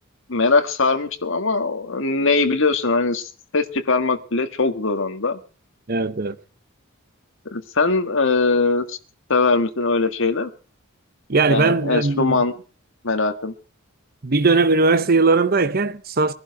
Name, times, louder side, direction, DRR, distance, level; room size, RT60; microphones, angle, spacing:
voice 1, 0.3-5.4 7.5-9.0 9.3-10.5 11.5-12.5 13.0-13.5, left 3 dB, 60° left, 1.7 m, -21 dB
voice 2, 5.9-6.3 11.3-12.4 14.2-16.3, right 3 dB, 45° right, 0.9 m, -19 dB
22.0 x 11.5 x 4.8 m
head